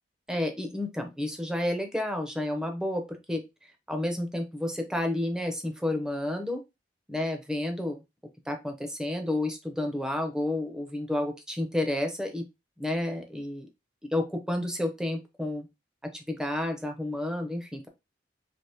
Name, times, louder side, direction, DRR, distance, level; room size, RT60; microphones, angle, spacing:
voice 1, 0.3-3.4 3.9-6.6 7.1-8.0 8.5-12.4 12.8-13.7 14.1-15.7 16.1-17.9, left 1 dB, 5° right, 4 dB, 0.6 m, -30 dB
3.4 x 2.9 x 2.8 m, 0.24 s
head